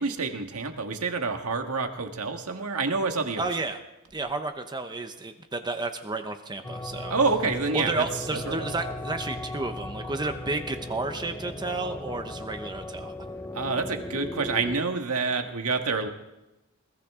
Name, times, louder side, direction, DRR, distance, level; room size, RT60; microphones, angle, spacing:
voice 1, 0.0-3.5 7.1-8.0 8.4-8.7 13.5-16.1, right 4 dB, 85° right, 5 dB, 1.6 m, -27 dB
voice 2, 3.4-3.8 4.1-7.1 7.7-13.1, right 2 dB, 20° right, 7 dB, 0.8 m, -32 dB
sound 1, 6.6-14.8, left 1 dB, 10° left, 0.6 m, -37 dB
21.0 x 14.5 x 3.7 m, 0.96 s
head